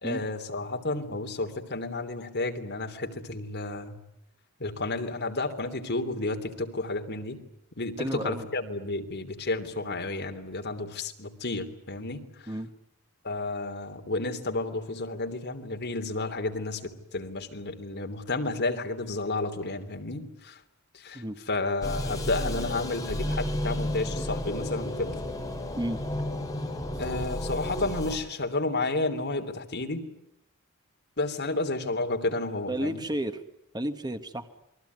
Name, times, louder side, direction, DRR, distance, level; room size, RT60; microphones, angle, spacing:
voice 1, 0.0-3.9 4.6-7.4 7.8-12.5 13.2-20.6 21.0-25.1 27.0-30.0 31.2-33.1, left 2 dB, 50° left, 5 dB, 3.1 m, -31 dB
voice 2, 8.0-8.5 12.5-12.7 21.1-21.4 25.8-26.0 32.7-33.4 33.7-34.5, right 1 dB, 20° right, 8 dB, 1.4 m, -32 dB
sound 1, 21.8-28.2, left 1 dB, 15° left, 3.7 m, -32 dB
28.0 x 22.0 x 9.5 m, 0.82 s
head